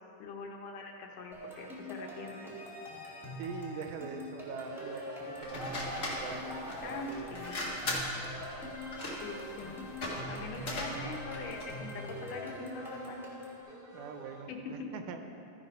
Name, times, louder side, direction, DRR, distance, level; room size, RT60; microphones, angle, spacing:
voice 1, 0.2-2.6 6.8-7.7 9.2-9.8 10.3-13.2 14.5-14.7, left 3 dB, 75° left, 2 dB, 2.3 m, -43 dB
sound 1, 1.3-13.6, left 1 dB, ahead, 0.8 m, -45 dB
voice 2, 3.4-8.5 13.9-15.2, right 6 dB, 80° right, 6 dB, 2.1 m, -44 dB
sound 2, 4.6-14.4, equal, 45° right, 0.7 m, -47 dB
sound 3, 5.4-11.8, left 1 dB, 55° left, 0.8 m, -39 dB
14.0 x 5.5 x 5.2 m, 2.8 s
omnidirectional pair, 3.9 m